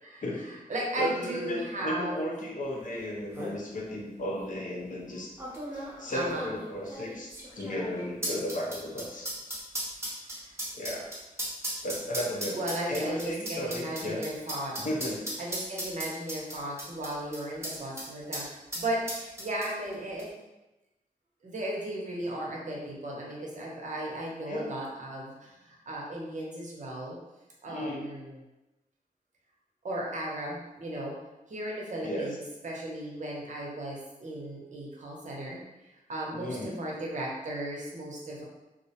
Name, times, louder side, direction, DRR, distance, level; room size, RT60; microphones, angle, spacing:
voice 1, 0.0-2.3 5.1-5.2 6.0-6.6 10.4-10.5 12.5-14.7 15.4-20.3 21.4-27.2 27.6-28.4 29.8-31.2 31.5-35.6 36.1-38.4, right 1 dB, 55° right, -3 dB, 0.6 m, -36 dB
voice 2, 1.0-5.3 5.7-9.5 10.7-11.1 11.8-14.2 14.8-15.2 24.5-24.7 27.7-28.0 32.0-32.4 36.3-36.7, left 1 dB, 60° left, -2 dB, 0.5 m, -35 dB
sound 1, 2.8-2.9 3.2-3.6 4.3-4.5 5.4-18.1 18.3-18.4 18.7-19.9 20.2-20.3, right 1 dB, 15° right, 0.6 m, -36 dB
2.4 x 2.0 x 2.8 m, 1.0 s
wide cardioid pair, 115°, 15 cm